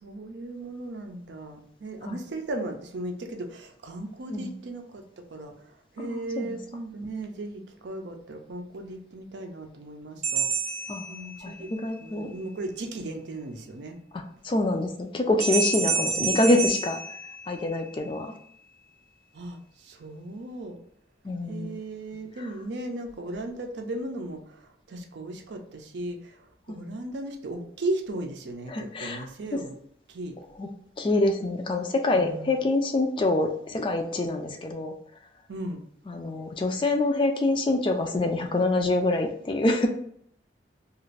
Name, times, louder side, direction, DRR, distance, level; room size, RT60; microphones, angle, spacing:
voice 1, 0.0-10.5 11.1-11.7 12.0-14.0 19.3-20.8 21.5-29.7 30.1-30.4 32.1-32.6 35.5-35.8, right 2 dB, 85° right, 4 dB, 0.5 m, -36 dB
voice 2, 6.1-6.6 10.9-11.1 11.4-12.3 14.1-17.0 17.5-18.3 21.2-21.7 26.7-26.8 28.7-29.3 30.6-30.7 31.0-34.9 36.1-39.9, left 2 dB, 30° left, 4 dB, 0.3 m, -26 dB
sound 1, 10.2-11.8 15.4-17.9, right 4 dB, 40° right, 0.7 m, -29 dB
2.5 x 2.4 x 3.1 m, 0.66 s
head